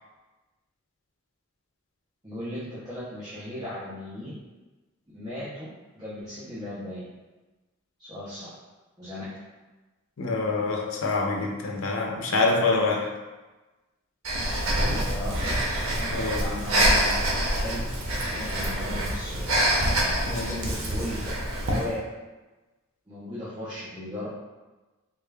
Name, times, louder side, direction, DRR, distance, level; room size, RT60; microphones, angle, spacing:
voice 1, 2.2-4.3 5.1-5.7 5.9-7.0 8.0-8.5 9.0-9.2 15.0-15.5 16.4-17.1 17.6-17.8 18.3-19.6 20.5-21.2 21.6-21.9 23.1-24.3, left 1 dB, 20° right, -11 dB, 0.8 m, -36 dB
voice 2, 10.2-13.1 16.1-16.5 20.3-20.5, left 3 dB, 65° left, 1 dB, 0.6 m, -26 dB
Breathing, 14.2-21.9, right 1 dB, 70° right, 0.7 m, -26 dB
3.6 x 2.4 x 3.3 m, 1.2 s
head